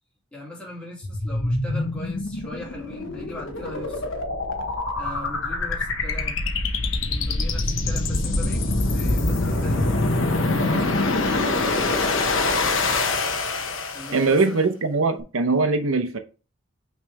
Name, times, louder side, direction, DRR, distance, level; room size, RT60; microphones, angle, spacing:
voice 1, 0.3-4.1 5.0-6.4 7.1-9.9 10.4-11.9 13.9-14.7, left 1 dB, 5° left, 2.2 m, -39 dB
sound 1, 1.0-14.4, left 2 dB, 65° left, 1.0 m, -24 dB
voice 2, 14.1-16.2, right 3 dB, 80° right, 0.8 m, -21 dB
6.1 x 3.4 x 4.7 m
head